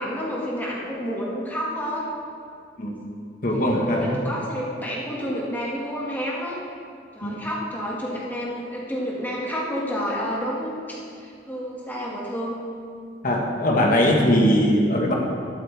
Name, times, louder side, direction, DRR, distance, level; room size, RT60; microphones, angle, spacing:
voice 1, 0.0-2.1 3.5-6.6 7.1-12.6, equal, 10° left, -5 dB, 1.9 m, -30 dB
voice 2, 3.4-4.2 7.2-7.3 13.2-15.1, equal, 45° left, -1 dB, 1.5 m, -20 dB
13.0 x 12.0 x 3.5 m, 2.3 s
head